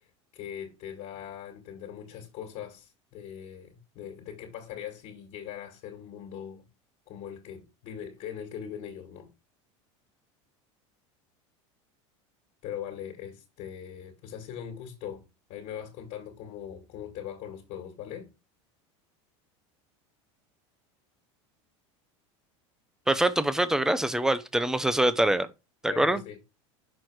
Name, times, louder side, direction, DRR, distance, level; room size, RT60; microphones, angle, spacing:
voice 1, 0.3-6.7 7.1-9.3 12.6-15.2 15.5-18.3 25.9-26.4, left 9 dB, 50° left, 1.9 m, -41 dB
voice 2, 23.1-25.5 25.8-26.2, right 1 dB, 5° right, 0.7 m, -24 dB
6.4 x 4.5 x 4.6 m
supercardioid pair, 125°, 16 cm